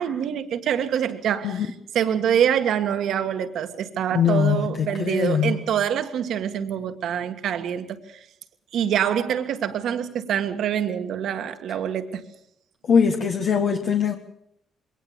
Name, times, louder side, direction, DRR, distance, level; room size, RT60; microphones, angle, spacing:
voice 1, 0.0-1.7 1.9-8.2 8.7-12.2, right 9 dB, 75° right, 8 dB, 1.7 m, -25 dB
voice 2, 4.1-5.6 12.8-14.1, left 7 dB, 65° left, 3 dB, 1.6 m, -22 dB
22.0 x 18.5 x 7.1 m, 0.73 s
cardioid pair, 90°, 0 cm